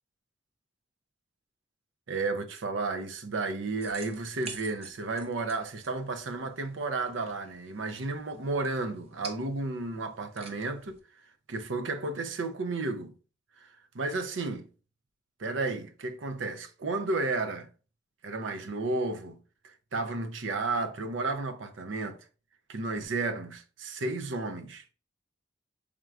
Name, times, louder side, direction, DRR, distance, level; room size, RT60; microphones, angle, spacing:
voice 1, 2.1-11.0 11.5-13.1 13.9-14.6 15.4-17.7 18.2-19.4 19.6-22.2 22.7-24.8, right 3 dB, 75° right, 0.6 m, -32 dB
sound 1, 3.8-11.0, right 4 dB, 30° right, 0.5 m, -49 dB
4.4 x 3.6 x 2.3 m
head